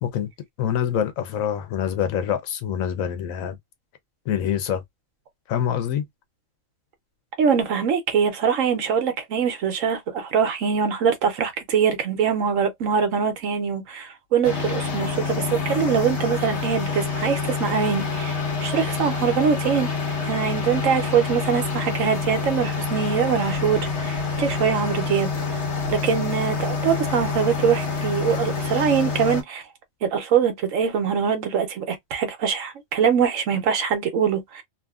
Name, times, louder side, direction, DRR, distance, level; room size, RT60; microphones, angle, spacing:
voice 1, 0.6-3.6 4.3-4.8 5.5-6.0, left 9 dB, 80° left, 1.1 m, -25 dB
voice 2, 7.4-19.9 20.2-25.3 25.9-29.6 30.0-34.6, right 7 dB, 75° right, 1.1 m, -23 dB
sound 1, 14.4-29.4, left 4 dB, 60° left, 1.1 m, -27 dB
2.8 x 2.5 x 2.3 m
omnidirectional pair, 1.4 m